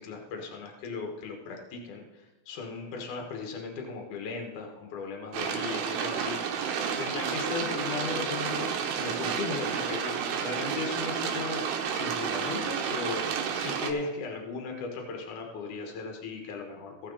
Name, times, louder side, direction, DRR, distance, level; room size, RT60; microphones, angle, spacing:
voice 1, 0.0-13.3 13.5-17.1, left 4 dB, 70° left, 2 dB, 1.9 m, -37 dB
sound 1, 5.3-13.9, right 7 dB, 80° right, 2.3 m, -31 dB
16.0 x 7.3 x 4.1 m, 1.2 s
omnidirectional pair, 6.0 m